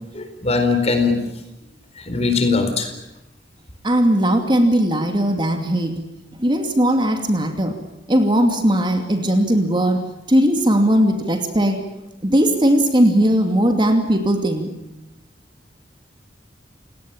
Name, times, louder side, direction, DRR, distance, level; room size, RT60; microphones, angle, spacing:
voice 1, 0.1-1.2 2.1-2.9, left 4 dB, 35° left, 7 dB, 4.3 m, -20 dB
voice 2, 3.8-6.0 6.4-7.8 8.1-10.0 10.3-11.8 12.2-14.7, equal, 25° right, 5 dB, 2.6 m, -18 dB
29.5 x 18.0 x 8.9 m, 0.93 s
head